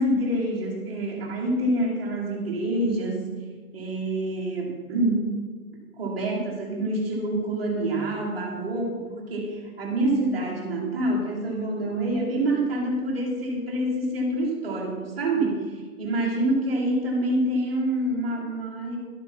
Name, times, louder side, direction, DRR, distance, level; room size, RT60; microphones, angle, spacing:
voice 1, 0.0-3.3 3.7-5.3 6.0-19.0, right 1 dB, 5° right, -10 dB, 1.3 m, -26 dB
11.5 x 6.2 x 7.2 m, 1.5 s
hypercardioid pair, 180°, 44 cm